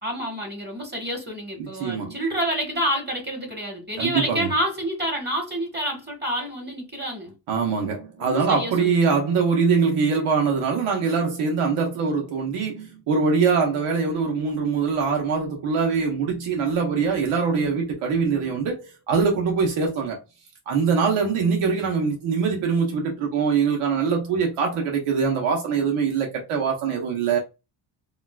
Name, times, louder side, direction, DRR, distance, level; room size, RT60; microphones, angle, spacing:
voice 1, 0.0-7.3 8.2-9.1, right 1 dB, 20° right, 1.5 m, -28 dB
voice 2, 1.6-2.2 4.0-4.5 7.5-20.2 20.7-27.4, right 5 dB, 85° right, 1.0 m, -23 dB
3.7 x 2.4 x 2.3 m
cardioid pair, 95°, 49 cm